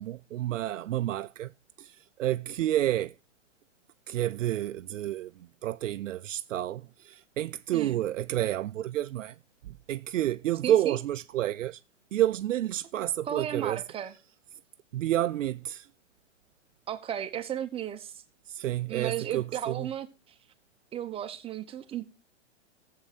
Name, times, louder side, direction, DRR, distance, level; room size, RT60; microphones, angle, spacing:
voice 1, 0.0-1.5 1.8-3.1 4.1-9.4 9.6-11.8 12.1-13.8 14.9-15.9 18.5-19.9, right 13 dB, 80° right, 0.5 m, -30 dB
voice 2, 10.6-11.0 13.0-14.1 16.9-18.2 18.9-20.3 20.9-22.1, right 10 dB, 15° right, 0.9 m, -35 dB
14.0 x 7.5 x 4.1 m
hypercardioid pair, 130°, 37 cm